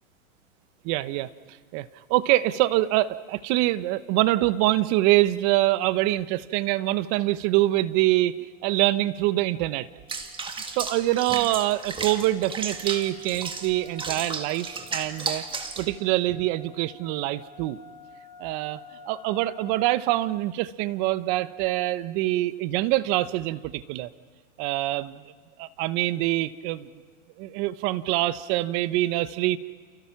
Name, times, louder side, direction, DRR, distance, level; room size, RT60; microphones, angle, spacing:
voice 1, 0.8-1.3 1.7-9.9 10.7-15.4 15.8-17.8 18.4-18.8 19.1-24.1 24.6-25.2 25.6-26.9 27.4-29.6, right 16 dB, 35° right, 15 dB, 1.0 m, -25 dB
sound 1, 7.9-8.0 8.3-8.7 9.1-20.1, left 5 dB, 10° left, 4.8 m, -51 dB
Water / Bathtub (filling or washing), 10.1-15.9, right 4 dB, 10° right, 1.8 m, -34 dB
29.5 x 29.0 x 5.9 m, 1.5 s
hypercardioid pair, 135°, 41 cm